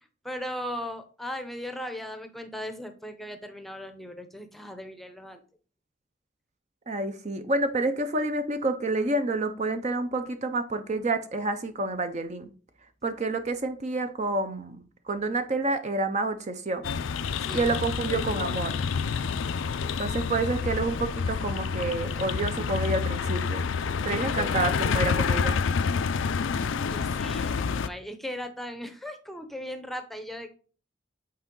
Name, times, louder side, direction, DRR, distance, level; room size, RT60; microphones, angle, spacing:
voice 1, 0.2-5.4 17.4-17.7 24.4-24.9 26.8-30.5, equal, ahead, 7 dB, 0.7 m, -38 dB
voice 2, 6.9-12.5 13.0-16.9 17.5-18.8 20.0-23.7 24.0-25.6, right 2 dB, 35° right, 9 dB, 0.6 m, -29 dB
sound 1, 16.8-27.9, left 5 dB, 80° left, 0.4 m, -28 dB
8.5 x 4.4 x 3.8 m, 0.40 s
head